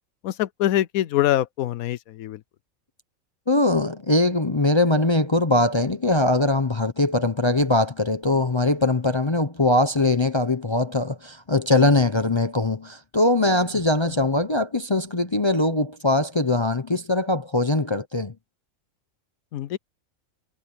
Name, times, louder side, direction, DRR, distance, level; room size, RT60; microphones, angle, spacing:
voice 1, 0.2-2.4 14.0-14.1 19.5-19.8, left 13 dB, 85° left, 1.1 m, -24 dB
voice 2, 3.5-18.3, left 2 dB, 25° left, 0.7 m, -21 dB
omnidirectional pair, 1.5 m